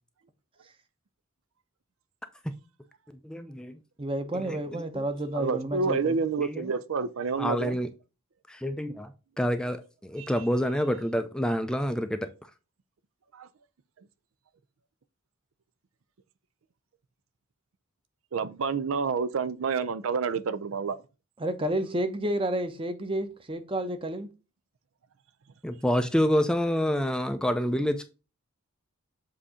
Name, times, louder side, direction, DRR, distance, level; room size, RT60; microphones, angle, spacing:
voice 1, 3.2-3.8 4.4-5.0 6.4-6.7 7.4-7.9 8.5-12.2 25.6-28.1, equal, 5° left, 0.4 m, -28 dB
voice 2, 4.0-6.2 21.4-24.3, right 1 dB, 25° right, 0.8 m, -30 dB
voice 3, 5.3-7.8 10.2-10.4 13.3-13.5 18.3-21.0, right 5 dB, 75° right, 0.5 m, -29 dB
7.5 x 2.8 x 4.9 m
head